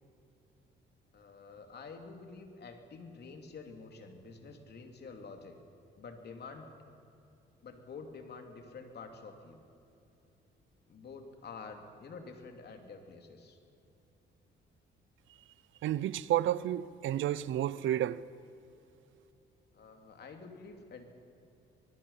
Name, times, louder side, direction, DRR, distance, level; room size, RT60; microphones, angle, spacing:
voice 1, 1.1-5.6 6.0-6.7 7.6-9.6 10.9-13.6 19.7-21.0, left 4 dB, 55° left, 3.0 m, -48 dB
voice 2, 15.8-18.2, right 12 dB, 75° right, 0.7 m, -31 dB
26.0 x 20.0 x 5.7 m
cardioid pair, 90°, 20 cm